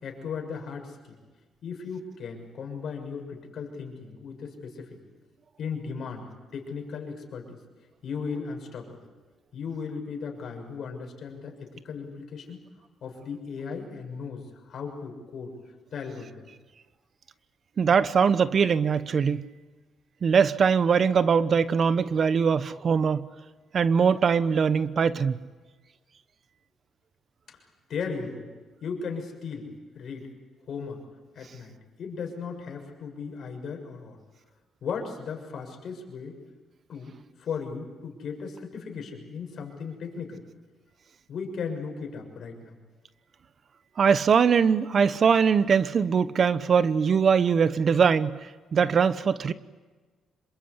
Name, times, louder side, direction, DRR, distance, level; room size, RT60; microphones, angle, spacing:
voice 1, 0.0-0.9 1.6-4.9 5.6-7.6 8.0-9.0 9.5-12.6 13.0-14.4 14.7-15.5 15.9-16.4 27.9-28.5 28.8-29.7 29.9-30.3 30.7-31.0 31.3-31.7 32.0-34.2 34.8-36.3 36.9-37.1 37.4-40.4 41.3-42.7, left 5 dB, 60° left, 6.7 m, -36 dB
voice 2, 17.8-19.4 20.2-23.3 23.7-25.4 44.0-49.5, right 6 dB, 50° right, 1.0 m, -22 dB
27.0 x 23.5 x 8.3 m
cardioid pair, 90°, 0 cm